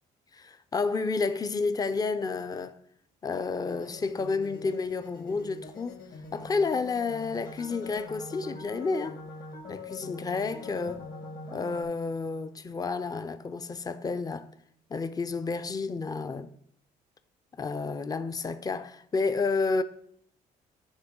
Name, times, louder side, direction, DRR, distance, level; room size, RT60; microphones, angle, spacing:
voice 1, 0.3-2.8 3.2-6.0 6.3-9.2 9.7-11.1 11.5-14.5 14.9-16.5 17.6-19.8, left 4 dB, 20° left, 0.5 m, -30 dB
sound 1, 3.6-11.8, left 3 dB, 55° left, 1.7 m, -43 dB
9.7 x 3.5 x 3.7 m
supercardioid pair, 70°, 18 cm